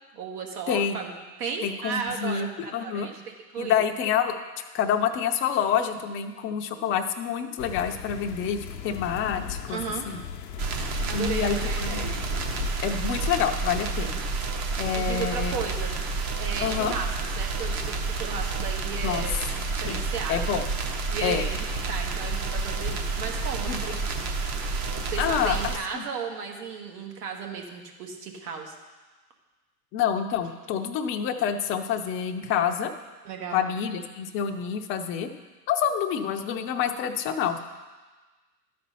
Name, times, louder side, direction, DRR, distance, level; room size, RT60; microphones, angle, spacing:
voice 1, 0.1-1.1 1.4-3.8 9.7-10.0 11.0-12.1 14.9-16.1 16.4-17.1 17.4-17.8 18.1-20.6 21.1-24.0 25.1-28.7 33.2-33.6, right 6 dB, 70° right, 2 dB, 1.6 m, -35 dB
voice 2, 0.7-1.0 1.6-2.5 2.7-3.1 3.6-4.3 4.7-9.8 10.1-10.2 11.1-12.1 12.8-14.2 14.8-15.5 16.6-16.9 19.0-19.2 19.8-20.0 20.3-20.7 21.2-21.5 23.7-23.8 25.2-26.0 29.9-32.9 33.5-35.3 35.7-37.6, left 8 dB, 25° left, 5 dB, 0.6 m, -27 dB
sound 1, 7.6-12.7, left 8 dB, 80° left, 0.7 m, -37 dB
sound 2, 10.6-25.8, right 3 dB, 35° right, 1.0 m, -30 dB
12.0 x 4.3 x 5.5 m, 1.3 s
hypercardioid pair, 115°, 49 cm